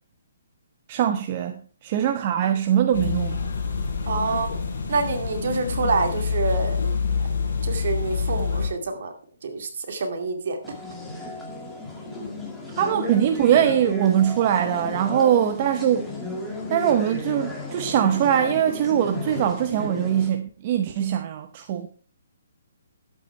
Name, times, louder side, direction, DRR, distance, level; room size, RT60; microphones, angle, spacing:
voice 1, 0.9-3.4 12.8-16.1 16.7-21.9, right 10 dB, 35° right, 0.8 m, -22 dB
sound 1, 2.9-8.7, left 5 dB, 60° left, 4.4 m, -26 dB
voice 2, 4.1-4.5 4.9-6.9 7.6-9.1 9.4-10.6 15.1-15.5, right 4 dB, 60° right, 2.3 m, -27 dB
sound 2, 10.6-20.3, left 2 dB, 5° left, 2.1 m, -34 dB
11.5 x 8.5 x 4.6 m
hypercardioid pair, 160°, 0 cm